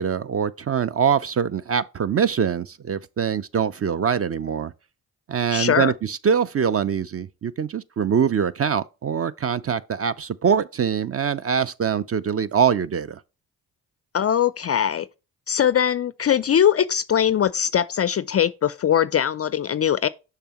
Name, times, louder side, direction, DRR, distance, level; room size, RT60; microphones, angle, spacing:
voice 1, 0.0-4.7 5.3-13.2, right 7 dB, 30° right, 0.4 m, -23 dB
voice 2, 5.5-5.9 14.1-15.1 15.5-20.1, left 9 dB, 35° left, 0.4 m, -21 dB
6.7 x 5.7 x 2.9 m
supercardioid pair, 50°, 46 cm